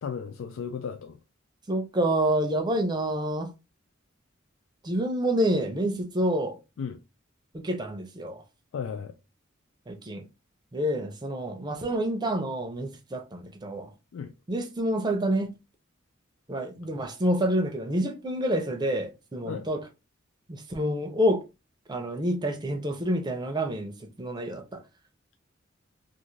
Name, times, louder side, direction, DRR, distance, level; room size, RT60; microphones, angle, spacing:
voice 1, 0.0-1.2 6.8-7.0 8.7-9.1 14.1-14.3 19.4-19.7, left 6 dB, 85° left, 0.3 m, -34 dB
voice 2, 1.7-3.5 4.8-6.6 7.5-8.4 9.9-10.3 10.7-13.9 14.5-15.5 16.5-19.8 20.5-21.4 21.9-24.8, right 1 dB, 20° right, 0.5 m, -28 dB
2.5 x 2.5 x 3.1 m
head